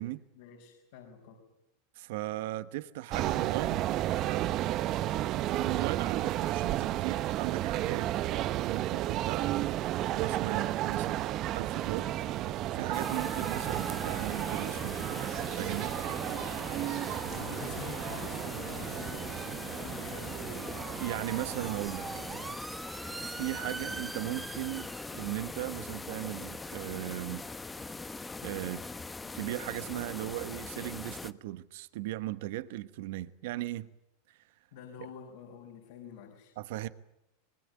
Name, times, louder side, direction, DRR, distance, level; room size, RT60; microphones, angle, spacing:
voice 1, 0.3-1.4 14.0-14.1 17.3-20.7 34.7-36.5, left 6 dB, 70° left, 5.3 m, -47 dB
voice 2, 1.9-3.9 4.2-4.5 5.5-8.1 8.7-9.6 10.1-12.1 12.4-15.9 21.0-22.1 23.0-27.4 28.4-28.8 29.3-33.9 36.6-36.9, right 16 dB, 70° right, 1.1 m, -37 dB
sound 1, 3.1-22.5, right 14 dB, 45° right, 0.8 m, -33 dB
sound 2, 10.9-30.4, right 3 dB, 15° right, 2.0 m, -48 dB
sound 3, 12.9-31.3, left 3 dB, 15° left, 1.1 m, -42 dB
25.0 x 20.0 x 9.3 m
hypercardioid pair, 105°, 0 cm